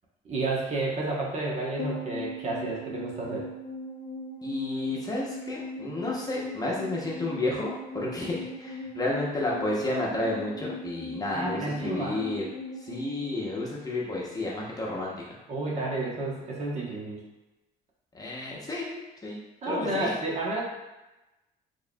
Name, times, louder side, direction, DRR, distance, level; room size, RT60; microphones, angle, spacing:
voice 1, 0.2-3.4 11.3-12.2 15.5-17.2 19.6-20.6, right 2 dB, 40° right, -4 dB, 1.0 m, -31 dB
sound 1, 1.8-14.3 14.6-14.7, left 1 dB, 85° left, 0.8 m, -39 dB
voice 2, 4.4-12.5 12.8-15.3 18.1-19.4 19.6-20.1, left 2 dB, 20° left, -4 dB, 0.9 m, -31 dB
4.6 x 3.1 x 2.3 m, 1.0 s
cardioid pair, 110°, 17 cm